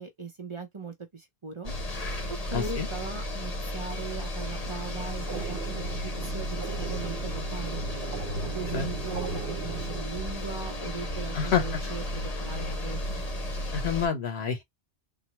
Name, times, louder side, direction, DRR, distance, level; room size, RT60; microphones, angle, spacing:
voice 1, 0.0-1.7 2.3-7.8 8.4-13.2, right 4 dB, 35° right, 0.6 m, -39 dB
sound 1, 1.6-14.1, left 1 dB, 40° left, 0.9 m, -34 dB
voice 2, 2.5-2.9 8.7-8.9 11.3-11.8 13.7-14.6, left 7 dB, 85° left, 1.3 m, -28 dB
sound 2, 4.8-10.0, right 8 dB, 70° right, 0.9 m, -39 dB
3.9 x 2.0 x 2.9 m
omnidirectional pair, 1.0 m